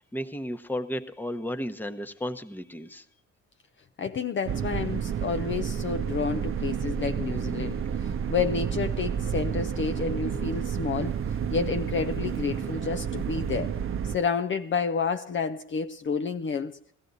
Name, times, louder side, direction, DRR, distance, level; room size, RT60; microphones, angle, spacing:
voice 1, 0.0-3.0, left 1 dB, 5° left, 1.0 m, -34 dB
voice 2, 4.0-11.2 11.5-13.7 14.0-16.8, left 5 dB, 40° left, 0.6 m, -30 dB
sound 1, 4.5-14.2, right 8 dB, 45° right, 0.7 m, -30 dB
16.5 x 14.5 x 4.1 m
cardioid pair, 90°, 30 cm